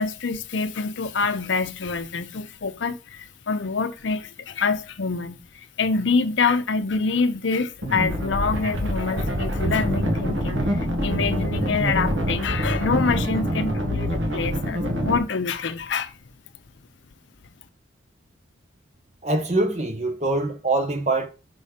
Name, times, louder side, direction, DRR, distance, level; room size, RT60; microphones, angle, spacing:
voice 1, 0.0-16.2, left 4 dB, 65° left, 0.6 m, -26 dB
sound 1, 7.8-15.2, equal, 65° right, 1.6 m, -25 dB
voice 2, 19.2-21.3, right 2 dB, 35° right, 1.1 m, -24 dB
6.2 x 4.2 x 4.9 m
head